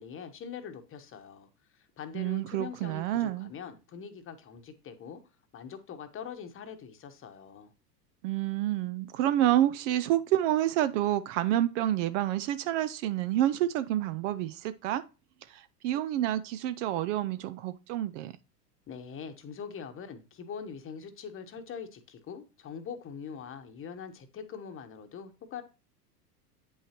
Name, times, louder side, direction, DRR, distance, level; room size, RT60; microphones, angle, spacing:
voice 1, 0.0-5.2 5.5-7.7 18.9-25.6, left 6 dB, 25° left, 1.0 m, -43 dB
voice 2, 2.1-3.5 8.2-15.0 15.5-18.4, right 13 dB, 50° right, 0.5 m, -28 dB
8.6 x 5.5 x 3.0 m
hypercardioid pair, 100°, 49 cm